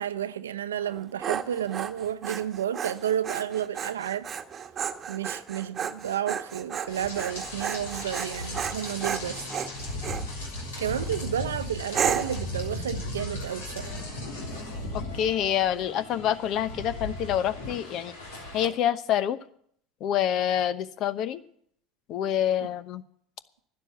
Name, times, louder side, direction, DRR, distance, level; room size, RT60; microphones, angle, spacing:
voice 1, 0.0-4.3 5.1-9.4 10.8-14.0, right 10 dB, 90° right, 0.6 m, -31 dB
Dog, 0.8-10.3 10.8-11.2 11.9-12.4, right 7 dB, 35° right, 1.1 m, -33 dB
Rain, 6.9-18.7, left 1 dB, 85° left, 3.3 m, -37 dB
voice 2, 14.9-18.1 18.5-19.4 20.0-21.4 22.1-23.0, left 10 dB, 55° left, 0.9 m, -27 dB
12.5 x 9.7 x 9.1 m
hypercardioid pair, 80°, 0 cm